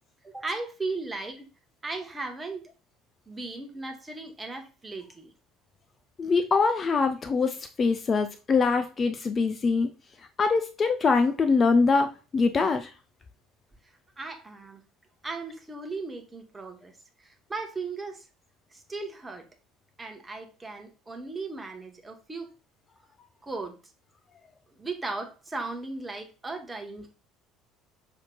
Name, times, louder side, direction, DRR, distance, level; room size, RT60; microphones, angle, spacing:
voice 1, 0.2-1.5 1.8-2.6 3.3-5.3 14.2-14.8 15.2-18.3 18.7-19.4 20.0-22.5 23.4-23.8 24.7-27.2, right 3 dB, 15° right, 3 dB, 1.0 m, -37 dB
voice 2, 6.2-9.9 10.4-12.9, left 4 dB, 30° left, 8 dB, 0.4 m, -23 dB
5.7 x 2.8 x 2.2 m, 0.33 s
figure-of-eight pair, 60°, 0 cm